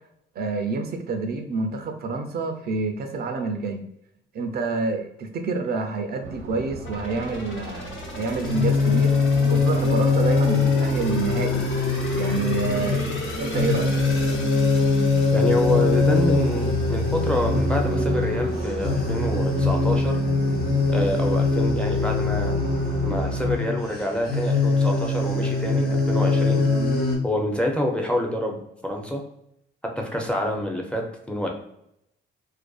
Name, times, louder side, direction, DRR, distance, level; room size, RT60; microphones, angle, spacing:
voice 1, 0.4-3.8 4.3-9.2 9.5-11.7 12.1-14.0, right 4 dB, 50° right, 5 dB, 0.4 m, -28 dB
sound 1, 6.2-23.6, right 1 dB, 80° right, 0.8 m, -32 dB
sound 2, 6.8-17.6 18.0-18.1, left 2 dB, 75° left, 1.0 m, -37 dB
sound 3, 8.4-27.2, left 3 dB, 50° left, 0.7 m, -23 dB
voice 2, 15.3-20.2 20.9-22.5 23.0-26.6 27.2-29.2 30.0-31.5, left 1 dB, 5° left, 1 dB, 0.5 m, -27 dB
2.5 x 2.2 x 2.3 m, 0.78 s
cardioid pair, 90°, 20 cm